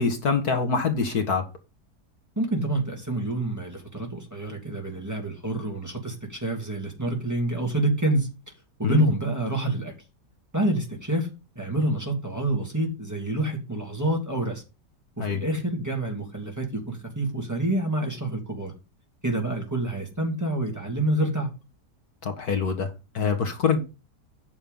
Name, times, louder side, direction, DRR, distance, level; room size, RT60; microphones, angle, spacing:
voice 1, 0.0-1.5 8.8-9.1 15.2-15.4 22.2-23.8, left 5 dB, 65° left, 2.0 m, -25 dB
voice 2, 2.4-8.3 8.8-9.9 10.5-11.3 11.5-14.6 15.2-18.7 19.2-21.5, right 1 dB, 10° right, 2.7 m, -27 dB
9.2 x 6.7 x 5.4 m
omnidirectional pair, 1.8 m